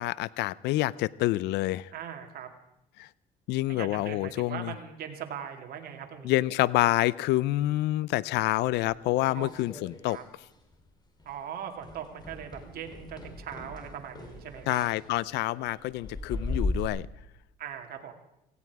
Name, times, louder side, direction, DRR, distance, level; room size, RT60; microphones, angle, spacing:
voice 1, 0.0-1.9 3.0-3.1 3.5-4.7 6.2-10.2 14.7-17.1, left 17 dB, 80° left, 21 dB, 0.5 m, -27 dB
voice 2, 1.9-2.5 3.7-6.3 9.3-9.5 10.1-10.2 11.2-14.8 17.6-18.1, right 8 dB, 60° right, 4 dB, 2.3 m, -40 dB
sound 1, 9.2-10.3 10.5-10.9 11.2-11.4 11.8-16.9, left 2 dB, 25° left, 3.1 m, -37 dB
18.0 x 16.0 x 4.8 m, 0.84 s
cardioid pair, 90°, 17 cm